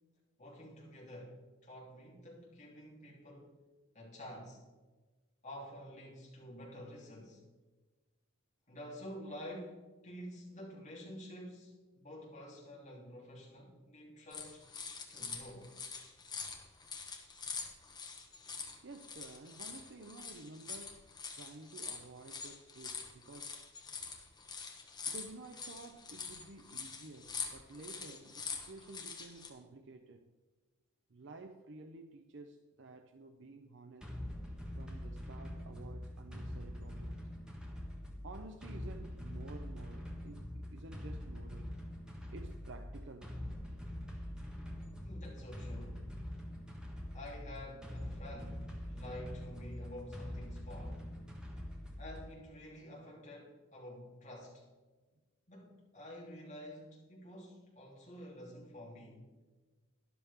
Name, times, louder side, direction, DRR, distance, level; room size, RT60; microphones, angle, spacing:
voice 1, 0.4-3.5 3.9-4.6 5.4-7.4 8.7-14.7 15.1-15.7 45.0-46.1 47.1-51.1 52.0-54.7 55.5-59.3, equal, 35° left, -4 dB, 3.3 m, -49 dB
sound 1, 14.3-29.5, left 5 dB, 20° left, 1.2 m, -45 dB
voice 2, 18.8-21.0 21.3-23.6 25.1-30.3 31.1-34.1 34.7-37.3 38.2-41.8 42.3-43.4, right 3 dB, 60° right, 7 dB, 0.6 m, -52 dB
sound 2, 34.0-52.4, left 1 dB, 5° right, 1.5 m, -44 dB
12.5 x 11.0 x 3.7 m, 1.3 s
head